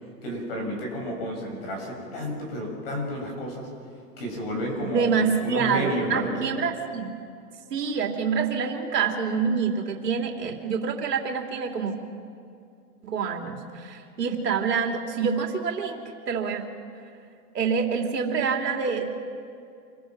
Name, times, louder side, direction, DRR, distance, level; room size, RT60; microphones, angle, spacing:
voice 1, 0.2-3.7 4.2-5.1 5.4-6.4, equal, 35° left, 0 dB, 7.0 m, -31 dB
voice 2, 4.9-7.2 7.7-11.9 13.0-16.6 17.5-19.0, right 6 dB, 85° right, 3 dB, 3.2 m, -26 dB
28.0 x 22.5 x 6.0 m, 2.4 s
hypercardioid pair, 175°, 47 cm